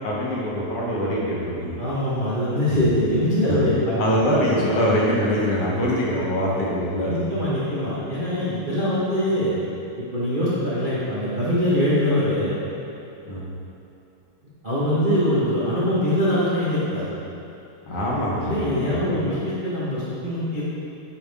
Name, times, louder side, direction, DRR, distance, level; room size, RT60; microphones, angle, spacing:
voice 1, 0.0-1.8 4.0-7.5 13.3-13.5 17.9-19.3, equal, 60° left, -5 dB, 1.9 m, -24 dB
voice 2, 1.8-4.8 7.1-9.5 10.1-12.5 14.6-17.1 18.4-20.6, left 1 dB, 45° right, -10 dB, 0.6 m, -23 dB
10.5 x 4.9 x 3.6 m, 2.7 s
omnidirectional pair, 3.3 m